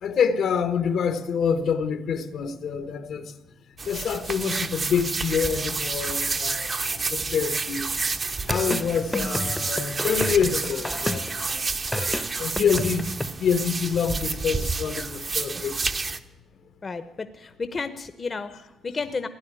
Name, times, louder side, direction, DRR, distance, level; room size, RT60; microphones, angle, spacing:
voice 1, 0.0-3.4 3.8-7.9 8.2-11.8 12.4-15.8, left 6 dB, 70° left, 1.3 m, -26 dB
sound 1, 3.8-16.2, right 4 dB, 35° right, 0.9 m, -29 dB
sound 2, 8.5-11.5 11.9-13.3, left 1 dB, 10° left, 0.8 m, -31 dB
voice 2, 16.8-19.3, left 4 dB, 35° left, 0.9 m, -32 dB
15.5 x 9.9 x 9.0 m
cardioid pair, 90°, 0 cm